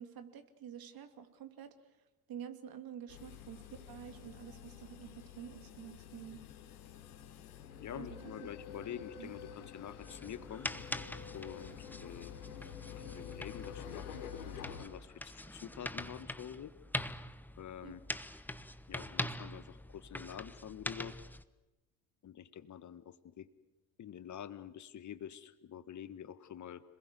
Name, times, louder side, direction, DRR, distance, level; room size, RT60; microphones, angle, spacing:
voice 1, 0.0-2.0 2.3-6.4 7.9-8.3 9.2-9.3 17.8-18.0, right 9 dB, 50° right, 8 dB, 2.7 m, -49 dB
sound 1, 3.1-14.8, left 8 dB, 80° left, 3.3 m, -49 dB
voice 2, 7.8-10.7 11.3-12.3 12.9-16.7 17.6-18.0 18.9-21.2 22.2-23.5 24.0-26.8, left 9 dB, 40° left, 13 dB, 1.6 m, -47 dB
sound 2, 10.0-21.4, left 1 dB, 5° left, 1.1 m, -44 dB
27.0 x 21.5 x 8.3 m, 1.1 s
hypercardioid pair, 65°, 44 cm